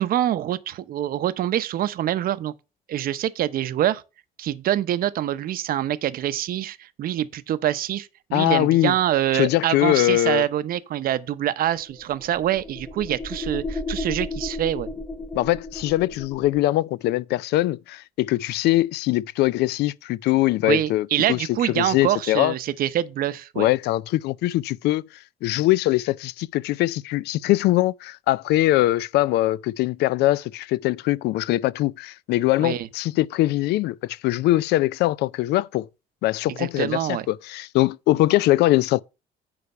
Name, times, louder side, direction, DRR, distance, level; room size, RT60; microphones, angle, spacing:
voice 1, 0.0-2.5 2.9-4.0 4.4-14.9 20.6-23.7 32.6-32.9 36.6-37.3, right 12 dB, 60° right, 0.7 m, -25 dB
voice 2, 8.3-8.9 9.3-10.4 15.3-22.5 23.6-25.0 25.4-35.9 36.2-39.0, left 16 dB, 75° left, 0.4 m, -22 dB
sound 1, 11.7-16.7, left 2 dB, 10° left, 0.6 m, -33 dB
9.6 x 3.4 x 6.7 m
cardioid pair, 110°, 17 cm